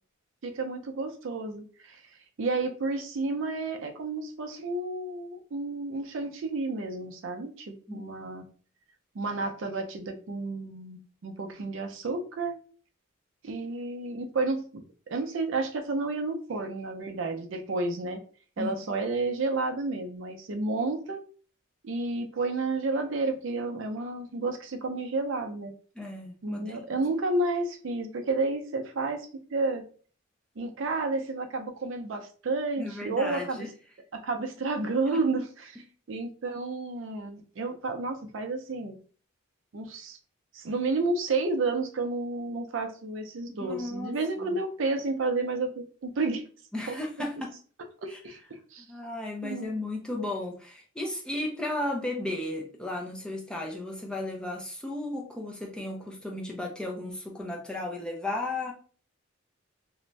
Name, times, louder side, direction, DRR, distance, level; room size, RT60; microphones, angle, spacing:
voice 1, 0.4-2.0 2.4-8.4 9.1-12.6 13.4-18.2 18.6-21.2 21.8-25.7 26.4-29.8 30.6-33.6 34.1-39.0 39.7-40.2 40.5-46.5 46.9-47.0 48.0-48.4 48.7-48.9 49.4-49.7, right 3 dB, 60° right, 6 dB, 0.4 m, -31 dB
voice 2, 26.0-26.8 32.8-33.7 35.1-35.2 43.6-44.2 44.4-44.6 46.7-47.5 48.1-48.2 48.8-58.7, left 2 dB, 5° left, -1 dB, 0.4 m, -34 dB
2.5 x 2.1 x 3.1 m, 0.41 s
head